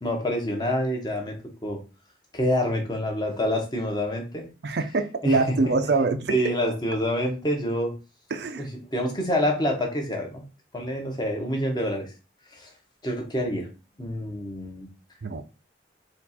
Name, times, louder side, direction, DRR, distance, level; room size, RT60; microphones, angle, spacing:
voice 1, 0.0-1.8 2.3-4.4 5.2-5.7 6.3-8.0 8.6-10.4 10.7-12.1 12.5-12.7 13.0-13.7 14.0-14.9, equal, 25° left, 1 dB, 1.0 m, -27 dB
voice 2, 4.6-6.3 8.3-8.7 15.2-15.4, right 3 dB, 65° right, 8 dB, 0.5 m, -24 dB
4.2 x 2.5 x 4.1 m, 0.32 s
head